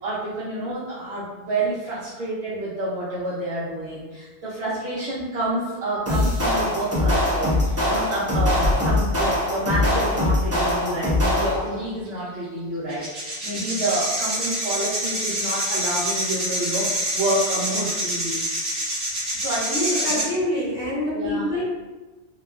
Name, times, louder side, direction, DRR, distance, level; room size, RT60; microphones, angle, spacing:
voice 1, 0.0-18.4 19.4-20.2 21.1-21.5, right 1 dB, 70° right, -9 dB, 0.9 m, -28 dB
sound 1, 6.1-11.8, left 1 dB, 25° right, 0.4 m, -22 dB
sound 2, 12.1-12.2 12.9-20.2, equal, 40° right, 0.8 m, -26 dB
voice 2, 19.7-21.6, left 1 dB, 60° left, -7 dB, 0.9 m, -26 dB
2.9 x 2.3 x 2.3 m, 1.2 s
omnidirectional pair, 1.1 m